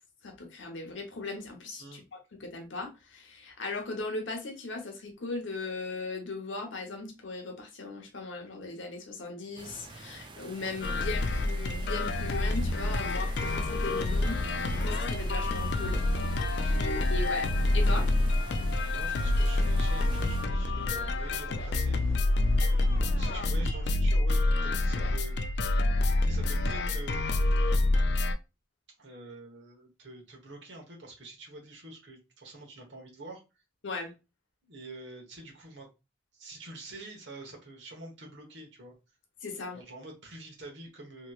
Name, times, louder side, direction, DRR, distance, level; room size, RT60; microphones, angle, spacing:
voice 1, 0.2-14.4 14.8-16.0 16.8-17.5 17.7-18.1 33.8-34.1 39.4-39.8, left 3 dB, 80° left, 0.9 m, -38 dB
sound 1, 9.6-20.4, right 3 dB, 25° right, 0.3 m, -45 dB
sound 2, 10.8-28.3, left 2 dB, 60° left, 0.3 m, -27 dB
sound 3, 12.9-23.7, equal, 5° left, 0.8 m, -47 dB
voice 2, 16.5-16.9 18.5-22.0 22.6-25.4 26.2-27.6 29.0-33.4 34.6-35.9 36.3-39.0 39.7-41.3, right 2 dB, 70° right, 1.1 m, -46 dB
2.9 x 2.9 x 2.3 m
head